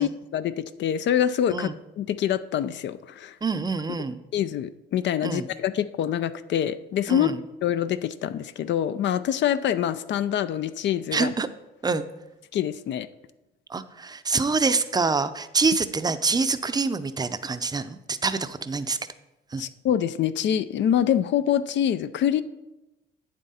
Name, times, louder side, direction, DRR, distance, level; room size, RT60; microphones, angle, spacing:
voice 1, 0.0-1.7 2.0-3.4 4.3-7.4 7.6-11.3 12.5-13.1 19.6-22.4, left 10 dB, 65° left, 13 dB, 0.5 m, -25 dB
voice 2, 3.4-4.2 5.2-5.5 7.1-7.4 11.1-11.5 11.8-12.0 13.7-19.0 19.5-19.6, right 4 dB, 20° right, 12 dB, 0.5 m, -26 dB
8.7 x 7.4 x 4.2 m, 0.98 s
cardioid pair, 90°, 20 cm